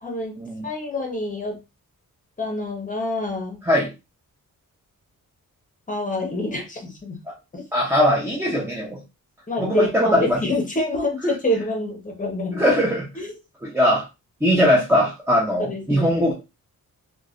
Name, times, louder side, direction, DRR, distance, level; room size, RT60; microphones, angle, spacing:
voice 1, 0.0-0.3 0.6-1.6 2.4-3.6 5.9-7.2 7.5-7.6 9.5-12.6 13.2-13.3 15.6-16.2, left 1 dB, 25° left, 1 dB, 0.8 m, -27 dB
voice 2, 7.7-9.0 9.6-10.4 12.5-13.1 13.6-14.0 14.4-16.3, equal, 10° right, -3 dB, 0.6 m, -20 dB
3.1 x 2.3 x 2.4 m, 0.26 s
wide cardioid pair, 155°, 33 cm